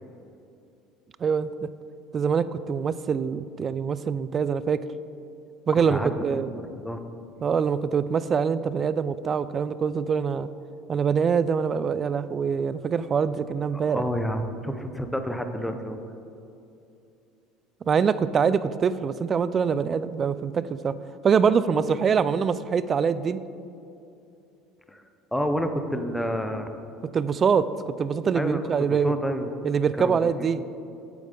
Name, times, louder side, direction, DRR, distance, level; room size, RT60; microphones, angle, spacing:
voice 1, 2.1-4.8 5.7-6.5 7.4-10.5 10.9-14.0 17.9-20.9 21.2-23.4 27.1-29.1 29.6-30.6, right 6 dB, 35° right, 15 dB, 0.3 m, -24 dB
voice 2, 5.9-7.0 13.9-16.0 24.9-25.0 25.3-26.7 28.3-29.5 30.0-30.5, equal, 5° left, 7 dB, 0.6 m, -29 dB
8.4 x 8.2 x 3.8 m, 2.7 s
supercardioid pair, 110°, 0 cm